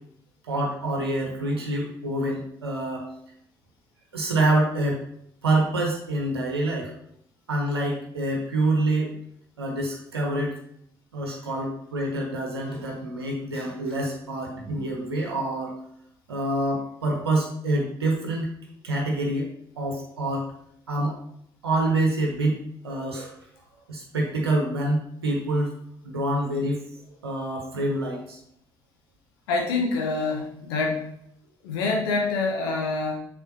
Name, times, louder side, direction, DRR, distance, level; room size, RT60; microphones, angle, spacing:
voice 1, 0.5-3.1 4.1-5.0 5.4-6.9 7.5-9.1 9.6-10.5 11.1-15.7 16.3-18.5 18.8-19.5 19.8-20.4 20.9-21.1 21.6-22.6 22.8-23.3 23.9-25.7 26.0-26.8 27.2-28.4, right 2 dB, 85° right, -1 dB, 1.1 m, -26 dB
voice 2, 29.5-31.1 31.6-33.1, left 3 dB, 75° left, -1 dB, 1.3 m, -26 dB
6.9 x 4.7 x 2.9 m, 0.71 s
figure-of-eight pair, 45°, 13 cm